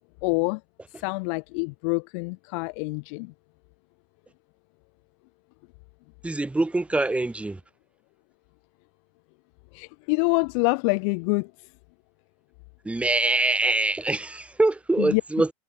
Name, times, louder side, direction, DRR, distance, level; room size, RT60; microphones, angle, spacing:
voice 1, 0.2-0.6 1.0-3.3 9.7-11.5 15.0-15.2, left 32 dB, 65° left, 2.1 m, -26 dB
voice 2, 6.2-7.6 12.8-15.5, right 2 dB, 5° right, 1.5 m, -24 dB
supercardioid pair, 110°, 17 cm